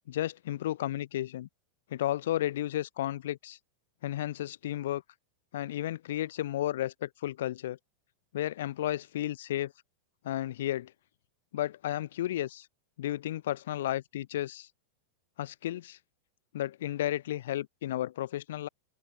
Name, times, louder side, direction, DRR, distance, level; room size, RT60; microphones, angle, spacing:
voice 1, 0.1-1.5 1.9-3.6 4.0-5.0 5.5-7.8 8.3-9.7 10.2-10.9 11.5-12.7 13.0-14.7 15.4-16.0 16.5-18.7, left 13 dB, 60° left, 3.4 m, -33 dB
open air
figure-of-eight pair, 90°, 0 cm